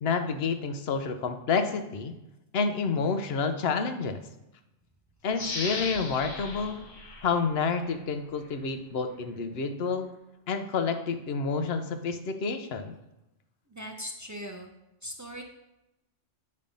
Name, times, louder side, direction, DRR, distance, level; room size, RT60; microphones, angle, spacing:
voice 1, 0.0-2.1 2.5-4.2 5.2-6.8 7.2-10.1 10.5-13.0, left 5 dB, 60° left, 8 dB, 0.9 m, -29 dB
sound 1, 5.3-8.0 8.5-8.6, left 3 dB, 80° left, 1.4 m, -38 dB
voice 2, 13.7-14.7 15.0-15.4, equal, 20° right, 2 dB, 0.4 m, -39 dB
8.6 x 3.2 x 5.2 m, 0.92 s
omnidirectional pair, 1.2 m